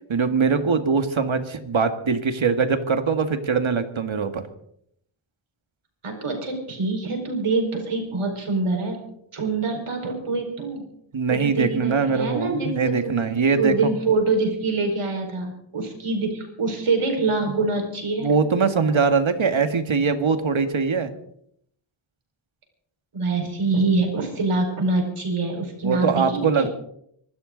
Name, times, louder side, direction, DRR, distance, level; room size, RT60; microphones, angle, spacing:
voice 1, 0.1-4.4 11.1-13.9 18.2-21.1 25.8-26.7, right 5 dB, 70° right, 8 dB, 1.8 m, -22 dB
voice 2, 6.0-9.0 9.3-10.8 11.3-13.2 13.5-18.3 23.1-26.7, right 3 dB, 90° right, 2 dB, 5.1 m, -25 dB
25.5 x 12.5 x 4.0 m, 0.70 s
wide cardioid pair, 65°, 49 cm